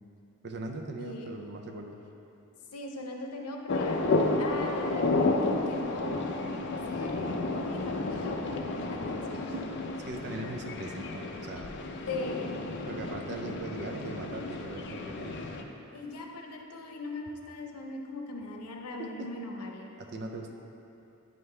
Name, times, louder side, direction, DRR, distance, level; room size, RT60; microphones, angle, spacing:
voice 1, 0.4-2.0 9.5-9.7 10.1-11.7 12.9-15.3 19.0-19.3 20.0-20.5, right 2 dB, 50° right, 3 dB, 0.6 m, -40 dB
voice 2, 1.0-1.3 2.7-9.7 12.1-12.6 15.9-19.9, left 2 dB, 90° left, 1 dB, 0.8 m, -40 dB
sound 1, 3.7-15.6, left 2 dB, 55° left, 0.5 m, -32 dB
9.2 x 5.4 x 3.3 m, 2.8 s
head